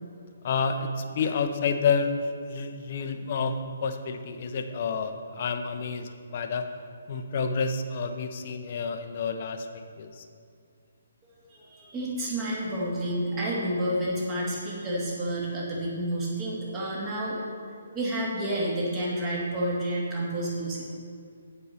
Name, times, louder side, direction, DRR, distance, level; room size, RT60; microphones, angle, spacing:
voice 1, 0.4-6.6 7.1-10.2, left 5 dB, 45° left, 6 dB, 0.7 m, -29 dB
voice 2, 11.5-20.8, right 1 dB, 20° right, -5 dB, 2.4 m, -30 dB
7.9 x 5.4 x 6.5 m, 2.4 s
figure-of-eight pair, 140°, 0 cm